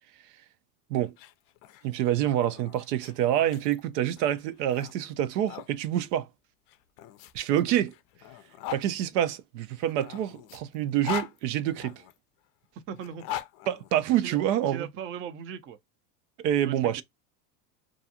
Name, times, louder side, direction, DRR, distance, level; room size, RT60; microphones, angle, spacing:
sound 1, 1.0-5.7 6.7-8.9 9.8-12.1 12.9-14.6, left 13 dB, 45° left, 0.4 m, -41 dB
voice 1, 1.8-6.3 7.3-7.9 8.7-12.0 13.7-14.9 16.4-17.0, right 11 dB, 80° right, 0.6 m, -27 dB
voice 2, 12.9-13.3 14.2-14.4 14.7-15.8 16.6-17.0, right 8 dB, 30° right, 0.4 m, -39 dB
2.5 x 2.3 x 2.7 m
supercardioid pair, 120°, 48 cm